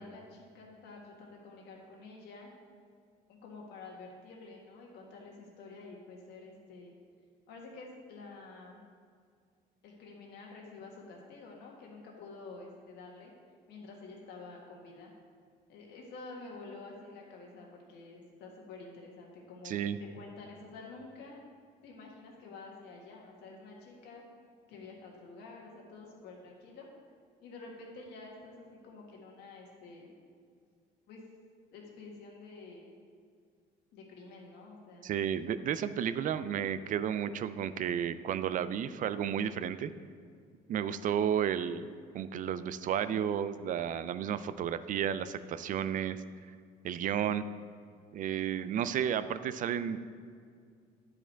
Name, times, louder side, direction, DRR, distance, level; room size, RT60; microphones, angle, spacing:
voice 1, 0.0-2.5 3.3-6.9 7.5-8.8 9.8-13.3 13.7-15.1 15.7-19.8 20.1-21.4 21.8-24.2 24.7-26.9 27.4-30.1 31.1-31.2 31.7-32.9 33.9-35.1, left 3 dB, 80° left, -1 dB, 1.7 m, -49 dB
voice 2, 19.6-20.0 35.0-39.9 40.7-46.2 46.8-47.4 48.1-50.0, right 9 dB, 50° right, 13 dB, 0.4 m, -32 dB
9.9 x 4.8 x 4.5 m, 2.2 s
cardioid pair, 110°, 17 cm